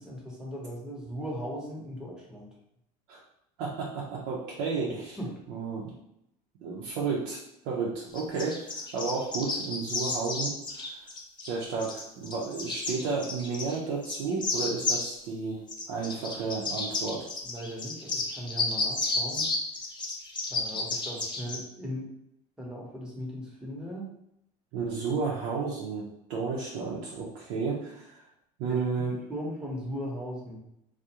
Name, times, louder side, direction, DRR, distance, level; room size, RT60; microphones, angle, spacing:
voice 1, 0.0-2.5 5.2-5.3 17.4-19.5 20.5-22.1 22.6-24.1 28.7-28.8 29.1-30.7, equal, 5° right, -3 dB, 0.8 m, -38 dB
voice 2, 3.6-5.2 5.5-5.9 6.6-11.1 11.4-15.6 15.9-17.3 24.7-28.2 28.6-29.1, right 4 dB, 70° right, -4 dB, 0.6 m, -32 dB
sound 1, 8.2-11.5 11.8-13.8 14.0-15.1 15.7-21.6, left 3 dB, 25° left, 0.5 m, -32 dB
2.3 x 2.1 x 2.8 m, 0.79 s
supercardioid pair, 90°, 19 cm